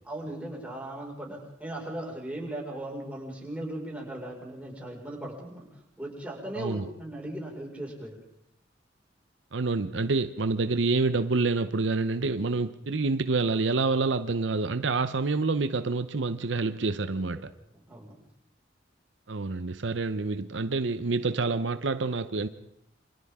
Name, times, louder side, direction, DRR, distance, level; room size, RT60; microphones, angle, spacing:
voice 1, 0.1-5.7 6.0-8.2 17.7-18.2, right 1 dB, 10° right, 5.3 m, -38 dB
voice 2, 9.5-17.5 19.3-22.5, right 3 dB, 80° right, 0.8 m, -27 dB
28.0 x 25.0 x 3.7 m
head